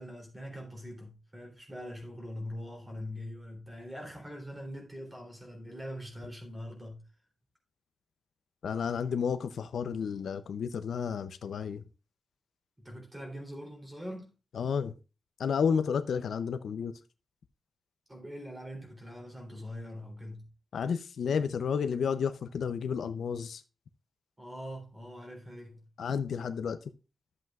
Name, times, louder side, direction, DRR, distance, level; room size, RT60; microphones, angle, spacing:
voice 1, 0.0-7.0 12.8-14.3 18.1-20.5 24.4-25.8, equal, 15° right, 3.2 m, -43 dB
voice 2, 8.6-11.8 14.5-14.9 15.4-16.9 20.7-23.6 26.0-26.8, left 6 dB, 85° left, 0.6 m, -31 dB
12.0 x 7.8 x 2.4 m
wide cardioid pair, 165°, 0 cm